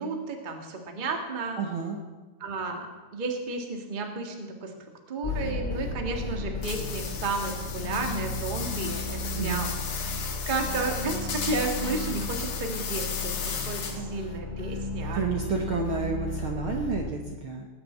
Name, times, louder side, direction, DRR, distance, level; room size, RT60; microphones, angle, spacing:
voice 1, 0.0-1.6 2.4-2.9 3.1-4.7 5.1-9.8 10.5-15.2, right 3 dB, 25° right, 3 dB, 1.2 m, -32 dB
voice 2, 1.5-2.0 9.3-9.7 13.9-14.2 15.1-17.7, right 4 dB, 55° right, 2 dB, 1.6 m, -31 dB
sound 1, 5.2-17.1, left 2 dB, 50° left, 0.5 m, -34 dB
sound 2, 6.6-14.2, left 6 dB, 75° left, 3.2 m, -35 dB
19.0 x 7.0 x 8.6 m, 1.2 s
omnidirectional pair, 3.6 m